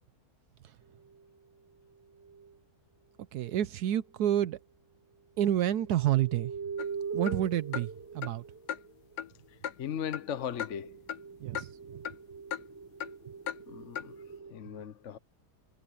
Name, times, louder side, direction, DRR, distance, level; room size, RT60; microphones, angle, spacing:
sound 1, 0.9-2.6 4.2-4.3 5.6-9.2 10.1-14.5, right 5 dB, 15° right, 0.6 m, -43 dB
voice 1, 3.3-4.6 5.4-6.5 7.1-8.4 11.4-12.0, right 12 dB, 80° right, 1.2 m, -29 dB
sound 2, 6.8-6.9 7.3-7.4 7.7-7.9 8.2-8.3 8.7-8.8 9.2-9.3 9.6-9.8 10.1-10.3 10.6-10.8 11.1-11.2 11.5-11.7 12.0-12.2 12.5-12.6 13.0-13.1 13.5-13.6 13.9-14.1, left 9 dB, 80° left, 1.4 m, -36 dB
voice 2, 9.8-11.0 13.7-14.1 14.5-15.2, left 9 dB, 55° left, 1.1 m, -37 dB
omnidirectional pair, 1.7 m